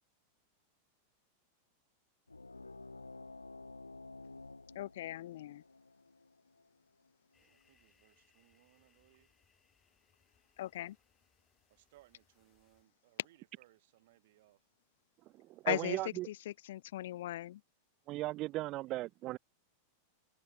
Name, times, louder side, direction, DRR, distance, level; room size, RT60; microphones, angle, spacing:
sound 1, 2.3-7.4, left 3 dB, 80° left, 2.0 m, -52 dB
voice 1, 4.7-5.6 10.6-11.0 15.7-16.0 16.3-17.6, left 14 dB, 55° left, 0.5 m, -38 dB
sound 2, 7.3-12.8, left 5 dB, 15° left, 5.0 m, -74 dB
voice 2, 7.4-9.3 11.7-14.7, right 17 dB, 55° right, 4.6 m, -67 dB
voice 3, 15.4-16.3 18.1-19.4, right 18 dB, 35° right, 0.4 m, -37 dB
figure-of-eight pair, 90°, 0 cm